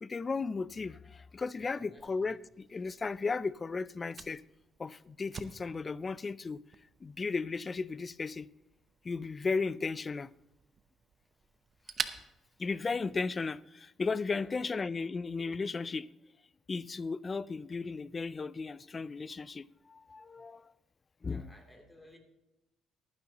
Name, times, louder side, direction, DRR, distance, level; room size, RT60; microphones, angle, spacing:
voice 1, 0.0-4.4 4.8-6.6 7.0-8.5 9.0-10.3 12.6-16.1 16.7-20.7 21.2-21.5, left 4 dB, 35° left, 0.4 m, -35 dB
voice 2, 1.6-2.3 14.3-14.7 21.3-22.2, left 1 dB, 10° left, 3.0 m, -56 dB
Fire, 2.0-13.5, right 5 dB, 45° right, 0.8 m, -47 dB
19.5 x 9.6 x 3.0 m
cardioid pair, 85°, 0 cm